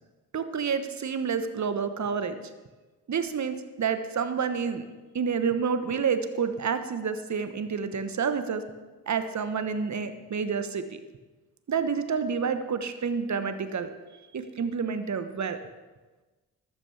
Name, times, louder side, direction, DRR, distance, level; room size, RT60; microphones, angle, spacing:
voice 1, 0.3-2.4 3.1-4.8 5.1-8.6 9.1-10.8 11.7-13.9 14.3-15.6, right 6 dB, 35° right, 10 dB, 1.2 m, -29 dB
14.5 x 13.0 x 3.4 m, 1.2 s
figure-of-eight pair, 40°, 47 cm